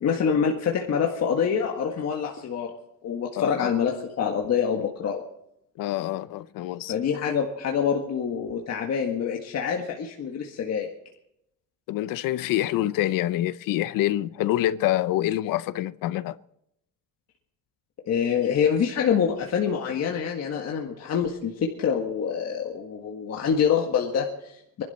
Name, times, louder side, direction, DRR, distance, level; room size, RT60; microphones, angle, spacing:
voice 1, 0.0-2.7 3.0-5.2 6.9-10.9 18.1-24.8, left 7 dB, 50° left, 1.8 m, -26 dB
voice 2, 3.4-3.7 5.8-6.9 11.9-16.4, left 14 dB, 85° left, 0.7 m, -26 dB
24.5 x 12.0 x 4.3 m
cardioid pair, 150°, 32 cm